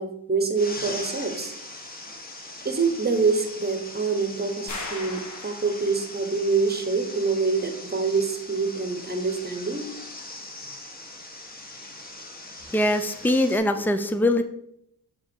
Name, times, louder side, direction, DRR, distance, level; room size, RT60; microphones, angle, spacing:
voice 1, 0.0-1.5 2.6-9.9, right 4 dB, 20° right, 6 dB, 1.2 m, -26 dB
sound 1, 0.5-13.6, left 2 dB, 20° left, 1.4 m, -41 dB
sound 2, 4.7-6.2, left 2 dB, 45° left, 1.5 m, -37 dB
voice 2, 12.7-14.4, left 1 dB, 5° left, 9 dB, 0.6 m, -22 dB
7.5 x 3.8 x 4.6 m, 0.75 s
cardioid pair, 80°, 42 cm